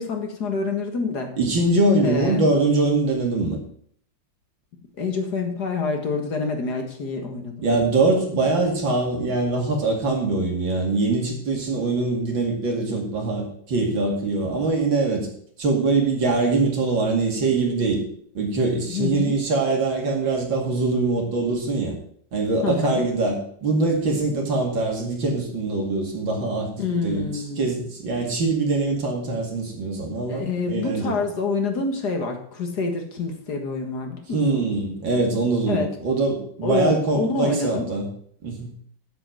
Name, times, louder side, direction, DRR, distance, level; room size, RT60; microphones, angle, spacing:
voice 1, 0.0-1.3 2.0-2.4 5.0-7.8 18.9-19.3 22.6-23.1 26.8-27.7 30.3-34.6 35.7-35.9 36.6-37.9, left 4 dB, 55° left, 4 dB, 2.2 m, -27 dB
voice 2, 1.4-3.6 7.6-15.3 15.6-18.0 18.3-21.9 22.3-26.7 27.0-31.2 34.3-38.1 38.4-38.7, right 3 dB, 80° right, 1 dB, 3.2 m, -23 dB
8.0 x 7.9 x 7.7 m, 0.62 s
omnidirectional pair, 2.1 m